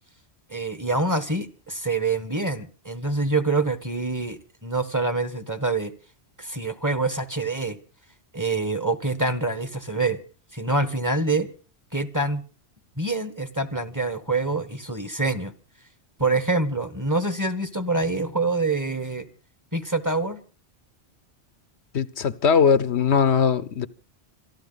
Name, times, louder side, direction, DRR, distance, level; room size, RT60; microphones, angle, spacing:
voice 1, 0.5-5.9 6.4-7.8 8.3-10.2 10.5-11.5 11.9-12.4 13.0-15.5 16.2-19.2 19.7-20.4, right 3 dB, 15° right, 1.3 m, -26 dB
voice 2, 21.9-23.9, left 6 dB, 85° left, 1.2 m, -20 dB
27.0 x 12.0 x 3.9 m
omnidirectional pair, 1.1 m